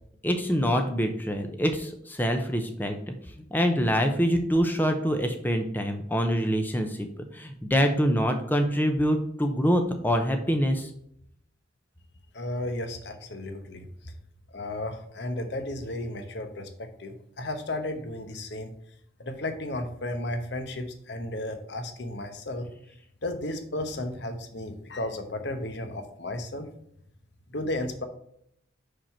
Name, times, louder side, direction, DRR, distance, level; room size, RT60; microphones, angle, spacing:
voice 1, 0.2-3.1 3.5-7.1 7.3-10.9, equal, 10° left, 5 dB, 0.6 m, -25 dB
voice 2, 12.3-13.9 14.5-18.7 19.2-22.7 23.2-26.7 27.5-28.0, left 1 dB, 60° left, 7 dB, 0.9 m, -34 dB
5.7 x 5.1 x 4.4 m, 0.70 s
head